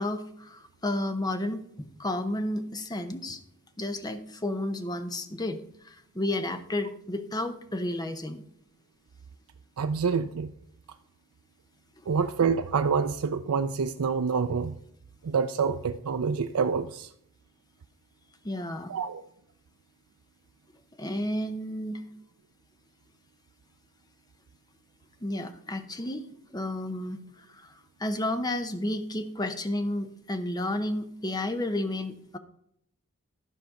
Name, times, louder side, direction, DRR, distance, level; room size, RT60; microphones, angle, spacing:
voice 1, 0.0-3.4 3.8-8.4 18.4-18.9 21.0-22.0 25.2-26.2 26.5-27.2 27.5-27.7 28.0-32.4, left 1 dB, 15° left, 9 dB, 0.7 m, -32 dB
voice 2, 9.8-10.5 12.1-14.8 15.2-17.1 18.9-19.2, right 5 dB, 80° right, 8 dB, 0.4 m, -27 dB
12.0 x 5.1 x 5.7 m, 0.72 s
head